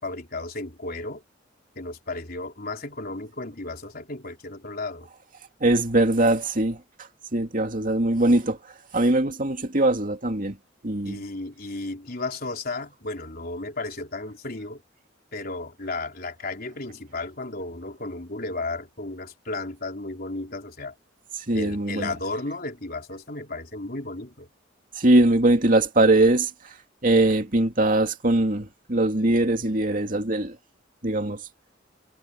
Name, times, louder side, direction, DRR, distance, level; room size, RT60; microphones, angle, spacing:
voice 1, 0.0-1.2 1.8-5.1 11.0-14.8 15.3-20.9 21.5-24.5, left 2 dB, 50° left, 3.8 m, -34 dB
voice 2, 5.6-6.8 7.3-8.6 8.9-10.6 10.8-11.2 21.5-22.1 25.0-26.5 27.0-30.5 31.0-31.4, right 2 dB, 45° right, 2.6 m, -21 dB
head